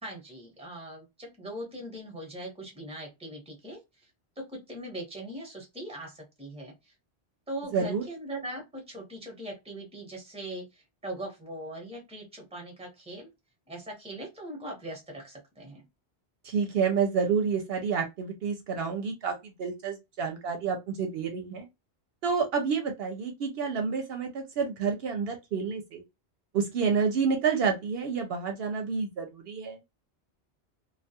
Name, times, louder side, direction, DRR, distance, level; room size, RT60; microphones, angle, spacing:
voice 1, 0.0-4.1 4.4-6.9 7.5-13.3 13.7-15.8, right 1 dB, 5° right, 0.8 m, -41 dB
voice 2, 7.7-8.0 16.4-21.7 22.2-26.0 26.5-29.8, right 6 dB, 70° right, 0.7 m, -29 dB
2.3 x 2.2 x 2.7 m
omnidirectional pair, 1.1 m